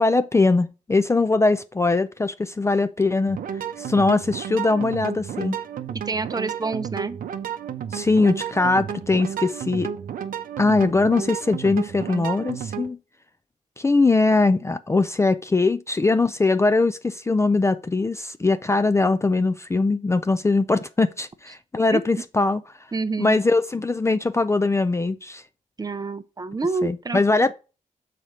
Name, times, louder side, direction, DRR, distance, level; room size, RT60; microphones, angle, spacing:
voice 1, 0.0-3.4 3.8-5.6 7.9-9.9 10.6-13.0 13.8-22.6 23.2-25.4 26.8-27.5, left 3 dB, 20° left, 0.4 m, -21 dB
sound 1, 3.3-12.9, right 8 dB, 90° right, 0.6 m, -32 dB
voice 2, 6.0-7.2 21.9-22.0 22.9-23.4 25.8-27.2, right 3 dB, 25° right, 0.6 m, -27 dB
6.5 x 4.2 x 4.9 m
cardioid pair, 90°, 14 cm